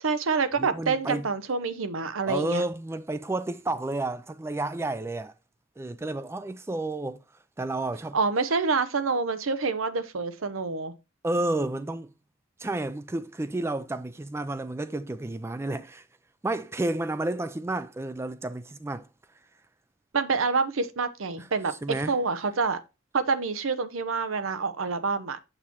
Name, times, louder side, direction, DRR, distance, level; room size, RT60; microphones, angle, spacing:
voice 1, 0.0-2.6 8.1-10.9 20.1-22.8 23.1-25.4, right 4 dB, 90° right, 0.7 m, -27 dB
voice 2, 0.6-1.2 2.3-5.3 5.8-7.2 7.6-8.2 11.2-12.1 12.6-16.1 16.4-19.1 21.4-21.5 21.8-22.1, right 2 dB, 15° right, 0.3 m, -31 dB
7.1 x 6.6 x 2.9 m
head